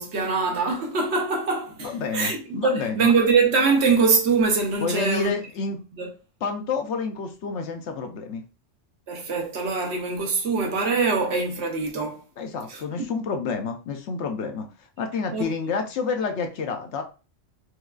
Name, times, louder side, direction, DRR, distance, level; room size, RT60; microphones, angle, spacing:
voice 1, 0.0-5.3 6.0-6.1 9.1-12.2 12.7-13.1 15.3-15.5, right 4 dB, 65° right, 1.0 m, -23 dB
voice 2, 1.8-3.1 4.8-5.8 6.4-8.4 12.4-14.7 15.0-17.0, left 4 dB, 70° left, 0.9 m, -29 dB
4.7 x 2.3 x 2.3 m
omnidirectional pair, 1.3 m